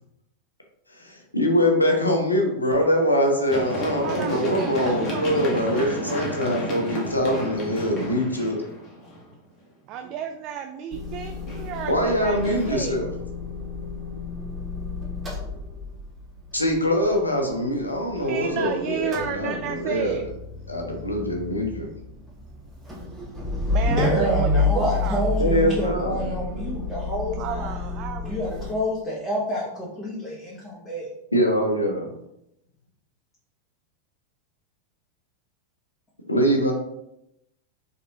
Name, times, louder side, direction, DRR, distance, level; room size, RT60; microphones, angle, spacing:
voice 1, 1.0-8.6 11.9-13.1 16.5-20.2 20.7-21.9 25.4-26.2 31.3-32.1 36.3-36.7, equal, 80° left, 2 dB, 0.8 m, -23 dB
Run, 3.5-9.3 11.2-12.7, equal, 30° left, 1.2 m, -33 dB
voice 2, 4.0-6.4 9.8-13.0 18.2-20.2 23.7-25.3 25.8-26.7 27.4-28.5, right 9 dB, 40° right, 5 dB, 0.3 m, -33 dB
Motor vehicle (road) / Engine starting / Idling, 10.9-18.6 18.9-28.7, left 3 dB, 20° right, 1.2 m, -30 dB
voice 3, 23.9-27.8 28.2-31.1, equal, 10° left, -7 dB, 1.1 m, -28 dB
4.0 x 3.4 x 2.7 m, 0.82 s
figure-of-eight pair, 90°, 0 cm